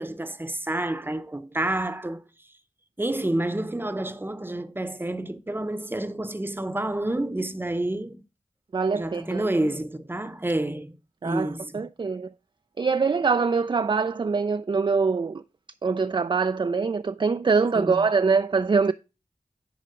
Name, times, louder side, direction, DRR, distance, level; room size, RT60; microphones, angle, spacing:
voice 1, 0.0-2.2 3.0-8.2 8.9-11.0 11.2-11.9 17.7-18.0, right 1 dB, 15° right, 0.8 m, -29 dB
voice 2, 8.7-9.5 11.2-11.5 11.7-12.3 12.8-15.4 15.8-18.9, right 5 dB, 40° right, 0.3 m, -23 dB
10.0 x 4.9 x 3.7 m
wide cardioid pair, 75°, 13 cm